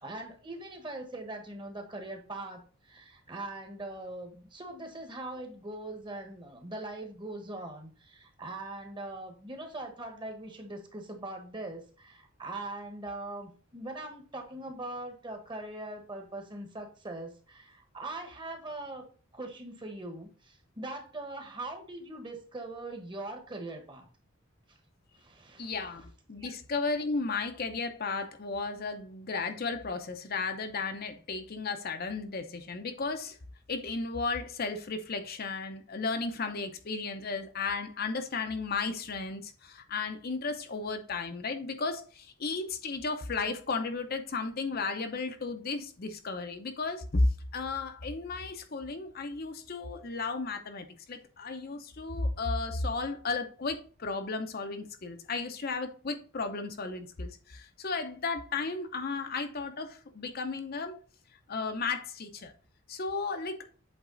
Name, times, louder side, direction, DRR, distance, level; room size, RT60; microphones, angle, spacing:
voice 1, 0.0-19.0 19.3-24.1 25.1-25.7 26.4-26.5, right 2 dB, 20° right, 1.2 m, -41 dB
voice 2, 25.6-33.4 33.7-47.3 47.5-61.0 61.5-62.5 62.9-63.7, left 3 dB, 45° left, 0.7 m, -34 dB
8.0 x 3.6 x 3.8 m
head